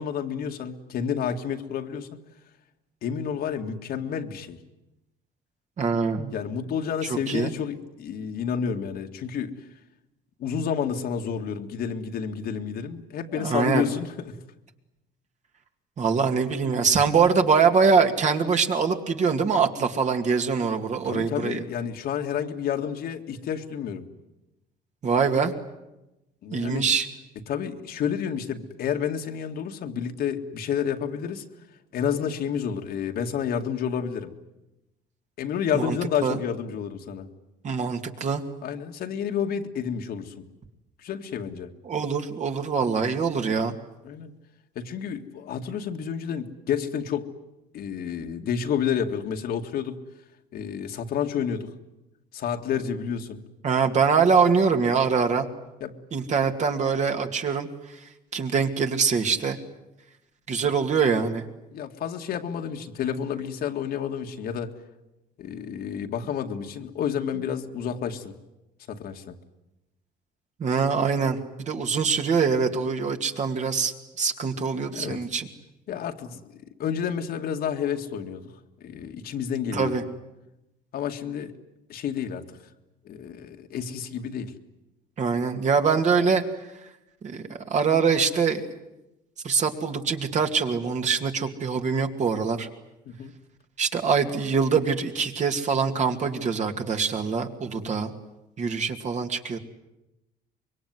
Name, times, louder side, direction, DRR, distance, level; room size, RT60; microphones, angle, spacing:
voice 1, 0.0-2.2 3.0-4.6 6.3-9.5 10.4-14.4 21.0-24.1 26.4-26.9 27.5-31.4 31.9-34.3 35.4-37.3 38.6-40.5 41.0-41.7 44.0-44.3 44.8-47.3 47.7-50.0 50.5-51.7 52.3-53.4 55.8-56.0 61.7-64.7 65.4-68.3 68.9-69.4 74.9-75.2 75.9-76.4 76.8-78.5 78.8-80.0 80.9-81.5 81.9-82.6 83.0-84.5 93.1-93.3 97.8-97.9, left 8 dB, 65° left, 4 dB, 2.1 m, -30 dB
voice 2, 5.8-6.3 7.1-7.5 13.3-13.9 16.0-21.6 25.0-25.5 26.5-27.1 35.7-36.0 36.2-36.4 37.6-38.4 41.8-43.7 53.6-55.5 56.1-58.0 58.3-59.6 60.5-61.4 70.6-75.5 79.7-80.0 85.2-86.4 87.2-88.6 89.4-92.7 93.8-98.1 98.6-99.6, right 5 dB, 45° right, 5 dB, 2.5 m, -24 dB
25.0 x 22.5 x 9.5 m, 0.96 s
cardioid pair, 110°, 17 cm